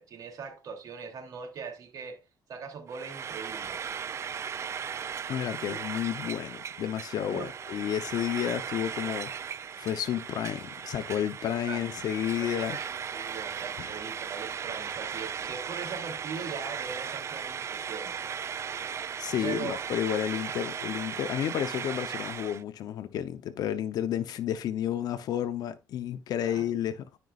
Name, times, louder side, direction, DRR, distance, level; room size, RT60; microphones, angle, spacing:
voice 1, 0.0-2.2 2.5-3.8 7.3-7.5 11.7-11.8 12.4-18.1 19.4-19.8 26.4-26.7, right 5 dB, 65° right, 2.9 m, -40 dB
Frying (food), 2.9-22.6, right 7 dB, 45° right, 0.4 m, -37 dB
voice 2, 5.3-9.3 9.8-12.8 13.8-13.9 19.2-27.1, left 10 dB, 75° left, 0.7 m, -31 dB
12.5 x 5.3 x 2.4 m
cardioid pair, 90°, 7 cm